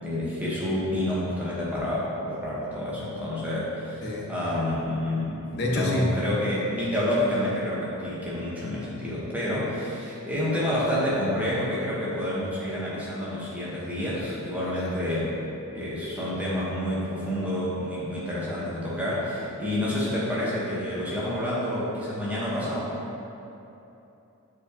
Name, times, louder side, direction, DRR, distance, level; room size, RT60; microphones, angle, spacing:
voice 1, 0.0-15.4 15.7-22.9, left 1 dB, 5° right, -8 dB, 1.1 m, -29 dB
voice 2, 4.0-4.3 5.5-6.2 14.6-14.9, left 1 dB, 50° left, -2 dB, 0.9 m, -27 dB
7.6 x 4.7 x 2.9 m, 2.9 s
head